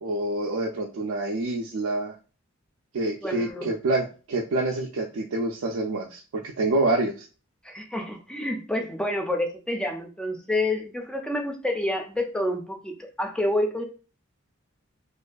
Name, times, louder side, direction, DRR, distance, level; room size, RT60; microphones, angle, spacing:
voice 1, 0.0-2.1 2.9-6.2 6.6-7.3, right 2 dB, 85° right, 0 dB, 0.4 m, -27 dB
voice 2, 3.2-3.7 7.6-13.8, left 1 dB, 5° left, 3 dB, 0.3 m, -28 dB
2.5 x 2.4 x 2.2 m, 0.36 s
head